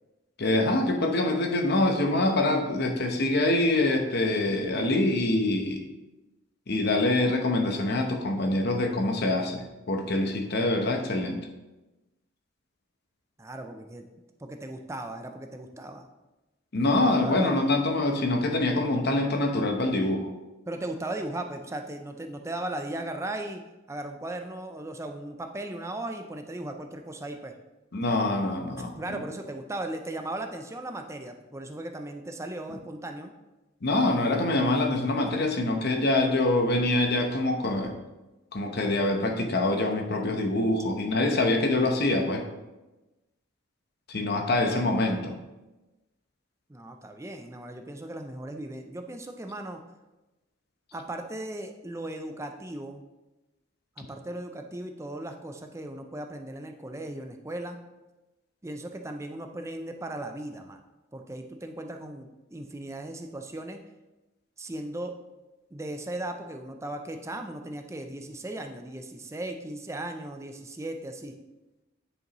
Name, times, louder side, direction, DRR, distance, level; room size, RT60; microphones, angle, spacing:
voice 1, 0.4-5.8 6.7-11.4 16.7-20.3 27.9-29.2 33.8-37.9 38.5-42.4 44.1-45.3 54.0-54.1, left 2 dB, 55° left, 4 dB, 0.9 m, -25 dB
voice 2, 13.4-14.1 14.4-16.1 16.9-17.7 20.7-23.6 23.9-27.5 29.0-33.3 46.7-49.8 50.9-53.0 54.0-57.8 58.6-60.8 61.1-63.8 64.6-65.1 65.7-71.3, right 1 dB, 15° right, 5 dB, 0.4 m, -37 dB
9.7 x 5.3 x 3.0 m, 1.1 s
head